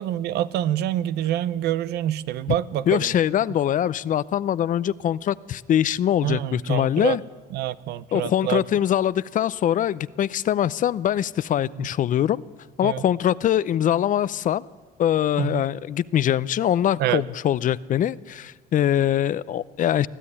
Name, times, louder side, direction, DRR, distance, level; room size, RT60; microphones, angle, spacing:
voice 1, 0.0-3.1 6.2-7.2 7.5-8.6 11.8-11.9 12.8-13.0 15.4-15.6 17.0-17.2, right 12 dB, 80° right, 16 dB, 0.8 m, -26 dB
voice 2, 2.9-7.2 8.1-12.4 12.8-14.6 15.0-20.1, left 10 dB, 50° left, 18 dB, 0.6 m, -23 dB
23.5 x 14.5 x 9.9 m, 1.4 s
cardioid pair, 110°, 17 cm